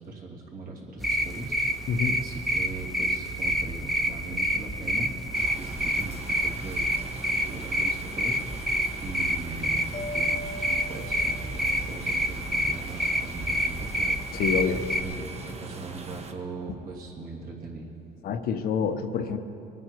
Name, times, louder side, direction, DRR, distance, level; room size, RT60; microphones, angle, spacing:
voice 1, 0.0-5.1 5.5-6.9 7.3-8.4 8.7-14.2 14.9-17.9, right 3 dB, 60° right, -2 dB, 2.8 m, -40 dB
sound 1, 1.0-15.0, equal, ahead, 0.8 m, -28 dB
voice 2, 1.9-2.2 14.3-14.8 18.2-19.4, left 6 dB, 65° left, 8 dB, 0.9 m, -27 dB
sound 2, 5.3-16.3, right 4 dB, 40° right, 1.1 m, -42 dB
Mallet percussion, 9.9-12.0, left 1 dB, 25° left, 0.6 m, -40 dB
21.5 x 9.4 x 4.6 m, 2.8 s
cardioid pair, 110°, 17 cm